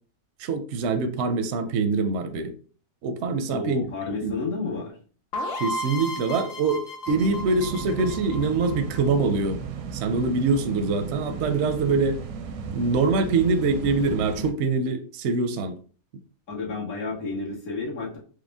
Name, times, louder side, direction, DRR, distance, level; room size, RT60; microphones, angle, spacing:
voice 1, 0.4-2.5 3.0-3.8 4.2-4.3 5.6-9.6 9.9-12.2 12.7-15.8, right 4 dB, 65° right, 0.7 m, -24 dB
voice 2, 3.5-5.0 16.5-18.2, left 3 dB, 75° left, 1.9 m, -31 dB
sound 1, 5.3-9.1, left 1 dB, 55° left, 0.7 m, -34 dB
sound 2, 7.1-14.5, right 6 dB, 85° right, 1.1 m, -35 dB
4.7 x 2.1 x 3.4 m
omnidirectional pair, 1.5 m